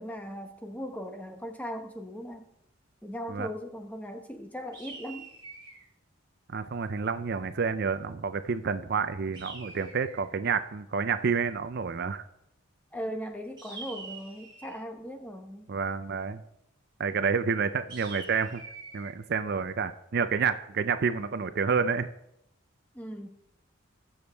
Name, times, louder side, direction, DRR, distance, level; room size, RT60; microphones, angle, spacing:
voice 1, 0.0-2.4 3.0-5.3 12.9-15.7 22.9-23.3, equal, 5° left, 5 dB, 0.9 m, -38 dB
sound 1, 4.7-5.9 9.3-10.4 13.6-14.8 17.9-19.1, right 4 dB, 20° right, 2.3 m, -45 dB
voice 2, 6.5-12.2 15.7-16.4 17.0-18.6 18.9-22.1, right 5 dB, 50° right, 11 dB, 0.5 m, -29 dB
20.5 x 7.0 x 3.4 m, 0.80 s
head